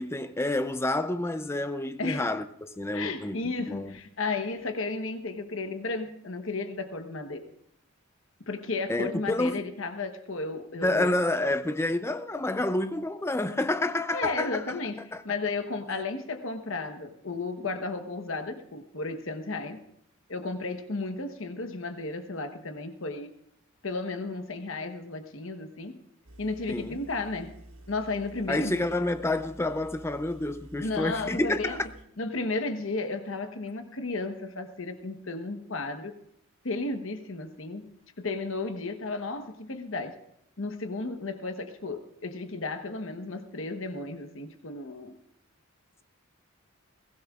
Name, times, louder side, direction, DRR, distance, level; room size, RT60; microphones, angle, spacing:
voice 1, 0.0-4.0 8.9-9.6 10.8-14.8 15.1-15.2 26.7-27.0 28.5-31.9, left 1 dB, 10° left, 0.5 m, -29 dB
voice 2, 2.0-2.3 2.9-7.5 8.4-11.2 14.1-19.8 20.3-23.3 23.8-26.0 26.4-27.6 27.9-28.8 30.8-31.8 32.2-36.1 36.6-37.9 38.2-40.1 40.6-45.2, left 3 dB, 65° left, 1.1 m, -33 dB
Engine, 26.2-32.0, right 1 dB, 85° right, 1.4 m, -50 dB
21.5 x 16.0 x 2.4 m
head